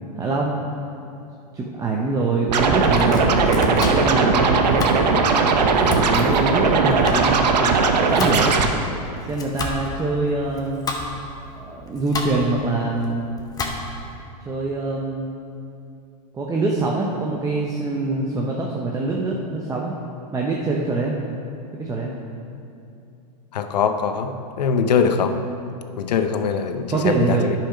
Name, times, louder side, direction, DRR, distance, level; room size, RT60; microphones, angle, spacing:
voice 1, 0.2-0.5 1.5-4.9 5.8-8.6 9.2-10.9 11.6-13.3 14.5-15.3 16.3-19.9 20.3-21.1 21.7-22.1 26.9-27.5, right 3 dB, 15° right, -2 dB, 0.7 m, -24 dB
Scratching (performance technique), 2.5-8.7, right 4 dB, 85° right, 0.9 m, -18 dB
Domestic sounds home sounds, 2.7-14.1, left 2 dB, 20° left, 1.0 m, -32 dB
voice 2, 23.5-25.3 26.0-27.5, left 6 dB, 85° left, 8 dB, 0.8 m, -22 dB
10.0 x 5.9 x 5.0 m, 2.6 s
hypercardioid pair, 125°, 21 cm